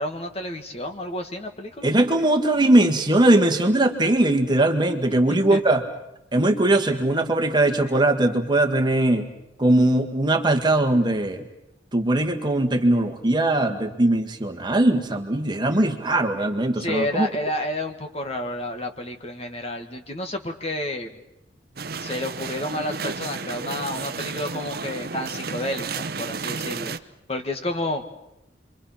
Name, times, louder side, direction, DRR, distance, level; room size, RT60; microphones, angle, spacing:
voice 1, 0.0-1.9 5.3-5.6 16.8-21.1 22.0-26.9 27.3-28.0, left 1 dB, 35° left, 5 dB, 1.8 m, -30 dB
voice 2, 1.8-5.8 6.3-9.3 9.6-11.4 11.9-17.3, right 1 dB, 25° right, 5 dB, 1.8 m, -20 dB
sound 1, 21.8-27.0, right 4 dB, 55° right, 0.9 m, -32 dB
30.0 x 24.0 x 5.9 m, 0.87 s
head